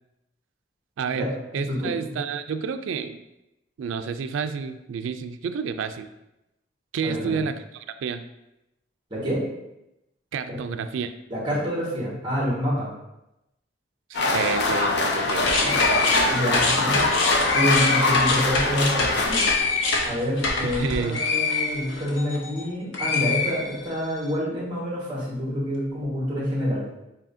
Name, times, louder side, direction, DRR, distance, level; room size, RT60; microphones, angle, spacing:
voice 1, 1.0-1.3 1.5-3.2 3.8-6.1 6.9-8.3 10.3-11.1 14.1-15.5 20.6-21.2, right 6 dB, 90° right, 9 dB, 0.3 m, -30 dB
voice 2, 1.7-2.0 7.0-7.4 9.1-9.4 10.5-10.6 11.3-12.9 15.6-15.7 16.3-17.0 17.5-19.4 20.0-26.8, equal, 25° right, -5 dB, 1.5 m, -27 dB
sound 1, 14.1-19.5, left 2 dB, 60° left, 0.6 m, -23 dB
sound 2, 15.3-22.6 22.9-24.1, left 3 dB, 90° left, 0.9 m, -25 dB
7.3 x 2.7 x 2.6 m, 0.90 s
head